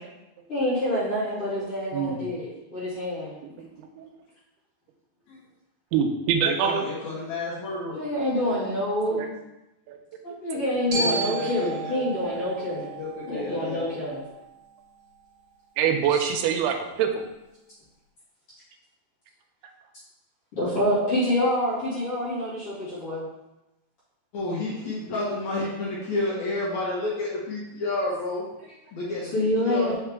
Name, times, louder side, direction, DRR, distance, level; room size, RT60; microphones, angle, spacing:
voice 1, 0.5-3.3 7.9-9.3 10.2-12.9 13.3-14.2 20.5-23.2 29.3-29.9, left 1 dB, 40° left, -11 dB, 2.5 m, -27 dB
voice 2, 3.6-4.1 5.9-6.8 9.1-9.3 9.9-10.0 15.8-17.1, right 7 dB, 80° right, 4 dB, 2.5 m, -25 dB
voice 3, 6.4-8.0 10.9-12.0 12.3-12.5 13.0-13.9 24.3-28.5 28.9-29.9, left 2 dB, 75° left, -6 dB, 1.6 m, -30 dB
Glockenspiel, 10.9-15.0, right 3 dB, 45° right, 2.5 m, -34 dB
5.8 x 5.6 x 3.5 m, 0.94 s
omnidirectional pair, 4.8 m